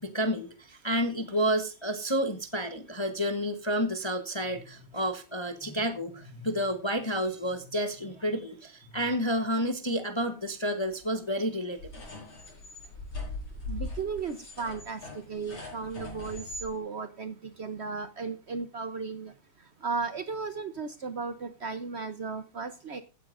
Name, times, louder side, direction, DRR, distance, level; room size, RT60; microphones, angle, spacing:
voice 1, 0.0-12.0, equal, 20° left, 0.8 m, -30 dB
sound 1, 11.8-16.7, left 2 dB, 65° left, 5.7 m, -40 dB
voice 2, 13.7-19.3 19.8-23.0, right 4 dB, 75° right, 0.6 m, -35 dB
16.0 x 9.6 x 2.6 m
omnidirectional pair, 2.3 m